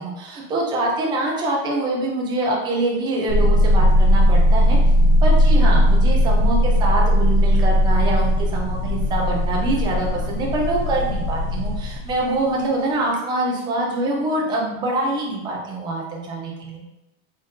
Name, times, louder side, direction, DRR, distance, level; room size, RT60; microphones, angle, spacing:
voice 1, 0.0-4.8 5.2-16.8, right 2 dB, 10° right, -2 dB, 0.3 m, -24 dB
sound 1, 3.3-12.2, equal, 30° left, 1.0 m, -17 dB
3.9 x 2.6 x 3.5 m, 0.93 s
supercardioid pair, 140°, 44 cm